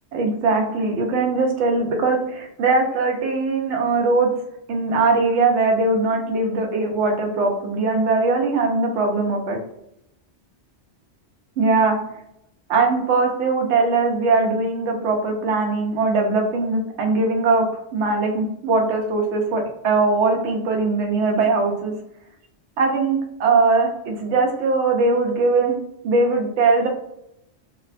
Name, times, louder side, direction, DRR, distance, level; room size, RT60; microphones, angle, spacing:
voice 1, 0.1-4.3 4.7-9.6 11.6-12.0 12.7-17.6 17.9-21.9 22.8-25.7 26.0-26.9, right 3 dB, 80° right, 2 dB, 0.9 m, -20 dB
2.8 x 2.1 x 2.4 m, 0.78 s
omnidirectional pair, 1.2 m